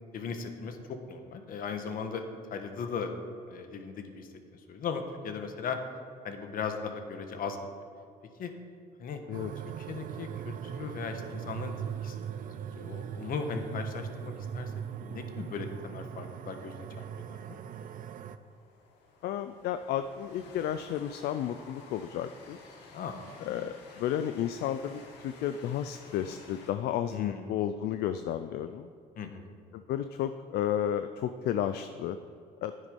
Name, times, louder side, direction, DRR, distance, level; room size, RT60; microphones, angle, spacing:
voice 1, 0.1-2.2 2.5-3.1 3.5-5.8 6.2-7.6 8.4-8.5 9.0-9.2 9.8-11.7 12.0-14.7 15.0-17.4 22.9-23.2 27.1-27.5 29.1-29.5, left 5 dB, 55° left, 6 dB, 1.4 m, -38 dB
sound 1, 9.3-18.4, right 8 dB, 55° right, 0.6 m, -40 dB
Train, 17.0-26.7, left 3 dB, 90° left, 1.8 m, -53 dB
voice 2, 19.2-22.6 23.4-28.9 29.7-32.2 32.6-32.7, left 10 dB, 70° left, 10 dB, 0.5 m, -32 dB
11.0 x 9.6 x 5.4 m, 2.4 s
cardioid pair, 110°, 17 cm